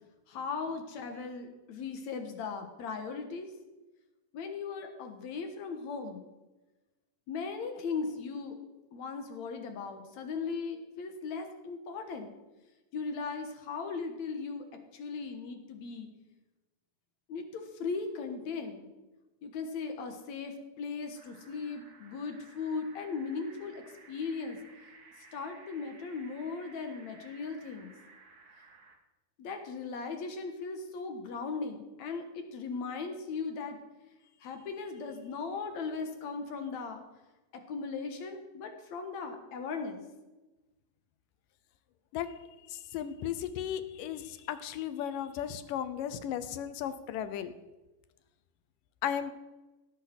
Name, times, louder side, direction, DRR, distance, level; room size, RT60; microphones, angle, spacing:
voice 1, 0.3-3.5 4.3-6.2 7.3-8.6 8.9-12.3 12.9-14.7 14.9-16.1 17.3-18.9 19.4-24.6 25.3-27.9 29.4-33.8 34.4-37.0 37.5-40.0, left 4 dB, 65° left, 6 dB, 2.5 m, -38 dB
sound 1, 21.1-29.0, right 4 dB, 40° right, 1.5 m, -57 dB
voice 2, 42.7-47.5 49.0-49.3, left 9 dB, 85° left, 12 dB, 2.5 m, -35 dB
17.5 x 8.3 x 6.0 m, 1.1 s
omnidirectional pair, 3.7 m